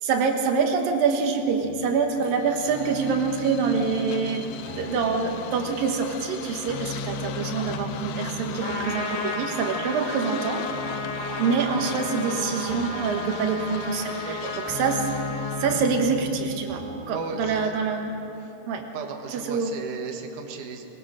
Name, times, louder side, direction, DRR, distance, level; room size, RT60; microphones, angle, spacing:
voice 1, 0.0-10.7 11.4-15.1 15.6-18.2 18.7-18.8 19.3-19.7, right 5 dB, 85° right, 3 dB, 3.1 m, -26 dB
sound 1, 1.6-17.7, left 1 dB, 5° right, 4.0 m, -38 dB
sound 2, 2.3-15.9, left 9 dB, 85° left, 2.6 m, -40 dB
Trumpet, 8.6-15.8, left 2 dB, 20° left, 1.2 m, -33 dB
voice 2, 14.2-14.6 17.1-17.7 18.4-18.5 18.9-20.8, right 4 dB, 70° right, 3 dB, 2.8 m, -36 dB
22.5 x 21.0 x 6.3 m, 2.9 s
omnidirectional pair, 4.0 m